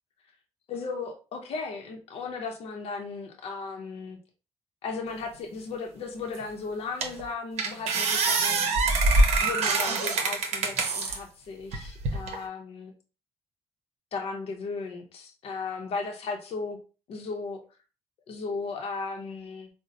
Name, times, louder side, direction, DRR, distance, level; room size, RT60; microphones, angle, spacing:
voice 1, 0.7-4.2 4.8-8.6 9.4-12.9 14.1-16.8 17.1-17.6 18.3-19.7, left 4 dB, 65° left, 3 dB, 0.7 m, -36 dB
sound 1, 6.3-6.4 7.0-7.2 7.6-11.2 11.7-12.4, right 3 dB, 75° right, 0.7 m, -24 dB
3.9 x 2.1 x 2.5 m, 0.34 s
supercardioid pair, 55°, 11 cm